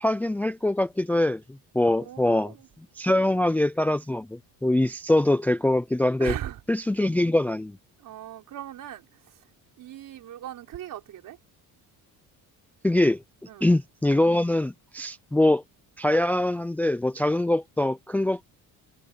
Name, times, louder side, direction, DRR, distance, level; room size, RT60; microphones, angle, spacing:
voice 1, 0.0-1.4 1.7-2.5 3.0-6.4 6.7-7.8 12.8-13.2 13.6-15.6 16.0-18.4, left 1 dB, 5° left, 0.5 m, -23 dB
voice 2, 1.9-2.7 6.2-6.6 8.0-9.3 9.8-11.4 13.5-13.7, right 12 dB, 55° right, 4.2 m, -38 dB
cardioid pair, 145°, 38 cm